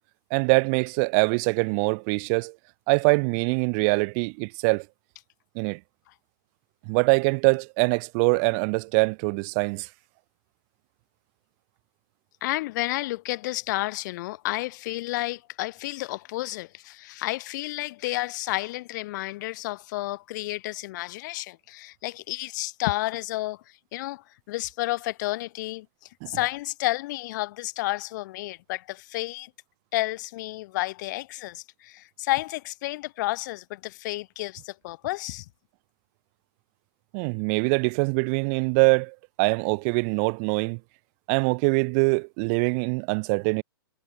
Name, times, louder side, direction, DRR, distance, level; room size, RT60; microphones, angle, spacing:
voice 1, 0.3-2.5 2.9-4.8 5.5-5.8 6.9-9.9 26.2-26.3 37.1-40.8 41.3-43.6, right 38 dB, 40° right, 1.0 m, -23 dB
voice 2, 12.4-23.6 23.9-25.9 26.3-29.5 29.9-35.4, left 19 dB, 50° left, 1.1 m, -31 dB
hypercardioid pair, 130°, 13 cm